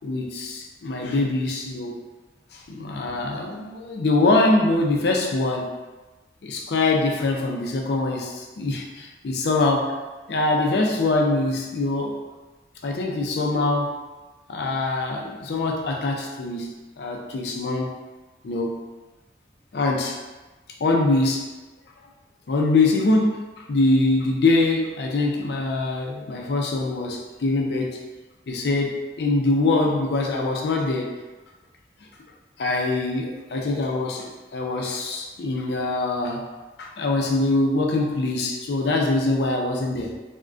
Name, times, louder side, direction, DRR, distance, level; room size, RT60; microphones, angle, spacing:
voice 1, 0.0-2.0 2.5-5.7 6.4-10.0 10.3-12.2 12.8-14.0 14.5-17.9 18.4-18.8 19.7-20.2 20.8-21.5 22.5-23.4 23.7-28.0 28.5-31.1 32.6-36.4 36.8-40.1, left 2 dB, 70° left, 1 dB, 0.4 m, -23 dB
3.5 x 2.2 x 2.5 m, 1.2 s
head